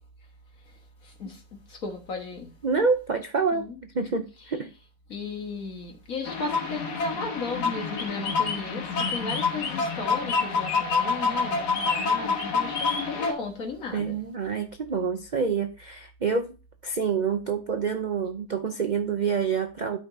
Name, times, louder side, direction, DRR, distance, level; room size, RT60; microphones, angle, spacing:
voice 1, 1.0-1.4 1.7-2.5 3.5-3.8 5.1-14.2, left 4 dB, 60° left, 1.9 m, -35 dB
voice 2, 2.6-4.7 13.9-16.5 16.8-20.0, right 5 dB, 65° right, 0.4 m, -27 dB
sound 1, 6.3-13.3, left 4 dB, 85° left, 1.9 m, -27 dB
12.0 x 5.2 x 2.7 m
omnidirectional pair, 1.7 m